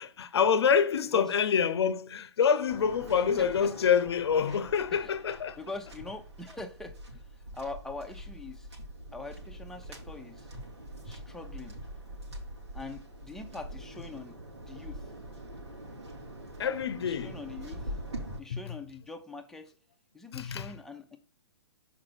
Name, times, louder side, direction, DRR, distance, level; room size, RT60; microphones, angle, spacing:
voice 1, 0.0-5.6 16.6-17.4 20.3-20.7, left 7 dB, 70° left, 0.7 m, -26 dB
Waves surf, 2.7-18.4, right 1 dB, 85° right, 3.6 m, -44 dB
voice 2, 3.4-3.7 4.9-5.1 5.6-7.3 7.5-8.7 9.1-10.5 11.0-11.8 12.7-15.1 17.0-18.0 18.4-19.7 20.1-21.2, left 3 dB, 5° left, 0.9 m, -43 dB
6.4 x 5.3 x 4.5 m
hypercardioid pair, 130°, 14 cm